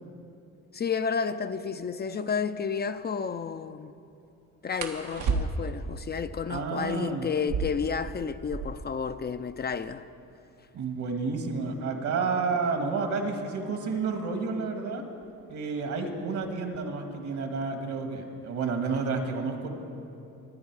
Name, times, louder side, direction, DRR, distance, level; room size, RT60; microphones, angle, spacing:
voice 1, 0.7-3.9 4.6-10.0, left 6 dB, 35° left, 0.5 m, -31 dB
sound 1, 2.1-2.3 4.7-5.9 7.3-9.0 9.3-9.4 9.6-10.2 10.8-13.3 14.4-14.7 15.1-15.5 15.9-16.6, right 4 dB, 90° right, 1.5 m, -34 dB
voice 2, 6.5-7.3 10.7-15.0 15.5-19.7, right 4 dB, 70° right, 2.1 m, -30 dB
24.0 x 9.5 x 4.8 m
cardioid pair, 90°, 30 cm